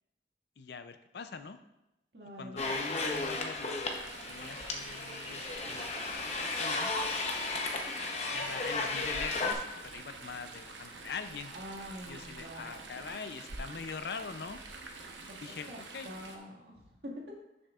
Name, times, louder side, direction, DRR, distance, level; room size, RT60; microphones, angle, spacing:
voice 1, 0.6-1.6 2.4-6.3 6.6-6.9 8.3-11.5 12.1-14.6 15.4-16.1, left 5 dB, 65° left, 9 dB, 0.5 m, -43 dB
voice 2, 2.1-2.6 11.5-13.0 15.3-15.4 15.7-15.8 16.0-16.9, equal, 65° right, -2 dB, 1.9 m, -46 dB
sound 1, 2.6-9.5, left 3 dB, 35° left, 0.8 m, -34 dB
Chatter / Stream, 3.9-16.4, right 3 dB, 85° right, 0.9 m, -47 dB
11.0 x 6.3 x 2.4 m, 0.91 s
head